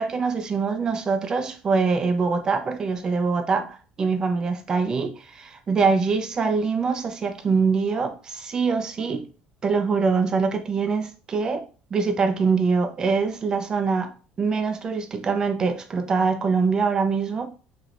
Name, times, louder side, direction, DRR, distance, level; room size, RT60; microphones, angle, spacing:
voice 1, 0.0-9.3 9.6-11.6 11.9-17.5, right 4 dB, 20° right, 0.4 m, -24 dB
3.0 x 3.0 x 2.5 m
cardioid pair, 170°, 3 cm